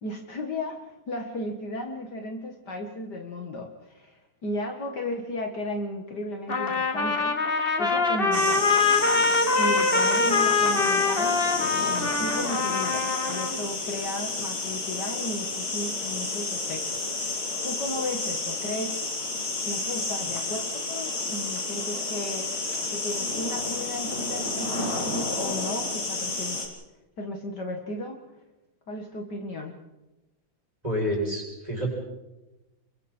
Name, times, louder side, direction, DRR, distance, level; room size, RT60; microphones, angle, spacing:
voice 1, 0.0-8.7 9.6-11.5 11.8-19.0 19.7-20.6 20.9-22.5 22.8-26.7 27.2-28.2 28.9-29.8, left 1 dB, 55° left, 3 dB, 2.2 m, -35 dB
Trumpet, 6.5-13.6, left 4 dB, 30° left, 1.8 m, -24 dB
sound 1, 8.3-26.7, left 3 dB, 85° left, 4.7 m, -31 dB
voice 2, 30.8-31.9, equal, 15° right, -2 dB, 6.9 m, -28 dB
30.0 x 23.0 x 4.4 m, 1.0 s
omnidirectional pair, 2.3 m